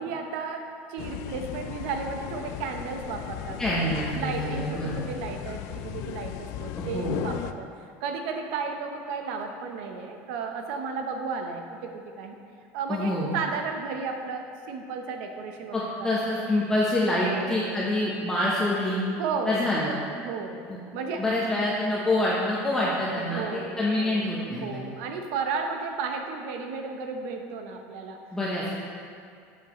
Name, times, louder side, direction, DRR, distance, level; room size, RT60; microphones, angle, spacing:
voice 1, 0.0-7.7 8.0-12.4 12.7-16.1 17.2-17.8 19.2-19.6 20.2-20.6 20.9-21.2 23.2-24.2 24.6-28.2, right 5 dB, 75° right, 4 dB, 1.0 m, -34 dB
sound 1, 1.0-7.5, left 11 dB, 60° left, 0.4 m, -36 dB
voice 2, 3.6-5.0 6.8-7.2 12.9-13.3 15.7-19.0 19.5-20.0 20.7-20.8 21.2-24.9 28.3-28.7, left 1 dB, 10° left, -6 dB, 1.0 m, -26 dB
11.0 x 7.2 x 3.1 m, 2.3 s
cardioid pair, 165°, 6 cm